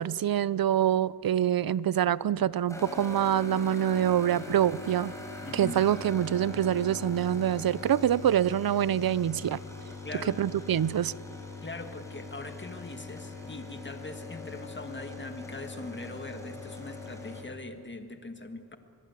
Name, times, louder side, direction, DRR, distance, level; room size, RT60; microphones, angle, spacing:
voice 1, 0.0-5.1 5.5-9.6 10.4-11.1, right 10 dB, 70° right, 20 dB, 0.6 m, -25 dB
sound 1, 2.7-17.4, left 3 dB, 10° left, 4.2 m, -42 dB
voice 2, 5.4-5.9 10.0-10.4 11.6-18.8, left 2 dB, 30° left, 7 dB, 1.8 m, -41 dB
24.5 x 21.5 x 8.4 m, 2.5 s
wide cardioid pair, 115°, 37 cm